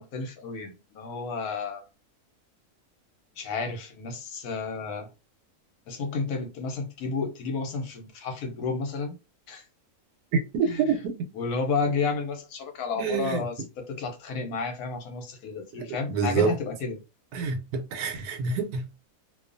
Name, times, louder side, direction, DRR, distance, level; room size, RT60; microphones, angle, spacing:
voice 1, 0.0-1.9 3.4-5.1 5.9-9.2 9.5-9.7 10.6-10.9 11.3-17.0, left 4 dB, 80° left, 1.2 m, -32 dB
voice 2, 10.3-11.1 12.9-13.4 16.1-16.5 17.3-18.9, right 5 dB, 85° right, 1.1 m, -26 dB
2.5 x 2.4 x 2.5 m
omnidirectional pair, 1.6 m